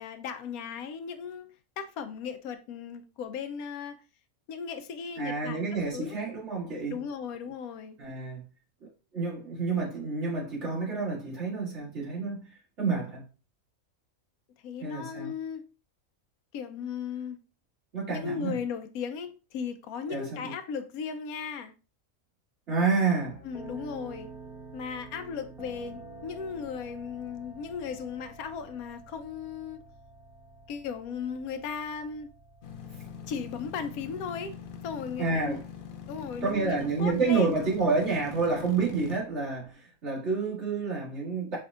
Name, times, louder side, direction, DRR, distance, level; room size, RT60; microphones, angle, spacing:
voice 1, 0.0-1.5 1.8-4.0 4.5-6.2 6.9-8.0 14.6-15.7 16.5-17.4 18.1-21.7 23.4-24.3 24.7-29.8 30.7-32.3 33.3-35.6 36.1-37.6, left 6 dB, 90° left, 1.1 m, -36 dB
voice 2, 5.2-7.0 8.0-8.4 8.8-8.9 9.1-12.5 12.8-13.2 14.8-15.3 17.9-18.6 20.1-20.5 22.7-23.4 35.2-35.6 36.4-41.6, right 4 dB, 55° right, 2.2 m, -29 dB
sound 1, 23.2-39.7, right 2 dB, 5° right, 0.7 m, -50 dB
sound 2, 32.6-39.2, left 7 dB, 70° left, 0.5 m, -43 dB
5.2 x 3.4 x 2.4 m
omnidirectional pair, 1.5 m